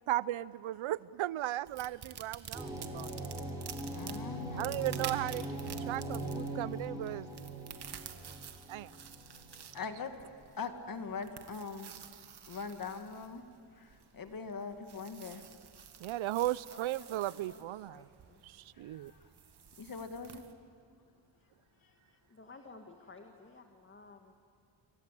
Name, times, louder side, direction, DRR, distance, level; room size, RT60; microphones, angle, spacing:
voice 1, 0.1-3.1 4.6-7.3 8.7-8.9 16.0-18.1 18.4-19.1, right 15 dB, 75° right, 20 dB, 0.7 m, -36 dB
sound 1, 1.7-20.5, right 8 dB, 55° right, 1.8 m, -50 dB
sound 2, 2.5-10.0, right 1 dB, 5° right, 6.4 m, -41 dB
voice 2, 3.9-4.7 9.7-10.1 10.6-11.9 12.5-13.4 13.8-13.9 14.1-15.4 19.8-20.4, left 5 dB, 45° left, 7 dB, 2.1 m, -41 dB
voice 3, 16.7-18.4 22.3-24.4, left 3 dB, 25° left, 4 dB, 1.8 m, -55 dB
27.5 x 24.0 x 8.4 m, 2.4 s
cardioid pair, 115°, 48 cm